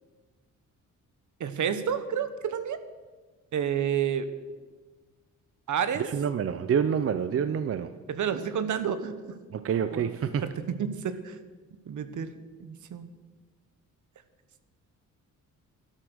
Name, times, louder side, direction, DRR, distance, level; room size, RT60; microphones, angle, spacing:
voice 1, 1.4-2.8 3.5-4.3 5.7-6.0 8.1-9.1 9.9-10.1 10.4-11.3 11.9-12.3 12.6-13.1, right 8 dB, 65° right, 12 dB, 1.2 m, -30 dB
voice 2, 6.0-7.9 9.5-10.4, right 7 dB, 45° right, 11 dB, 0.6 m, -27 dB
12.5 x 12.0 x 6.3 m, 1.4 s
cardioid pair, 135°, 33 cm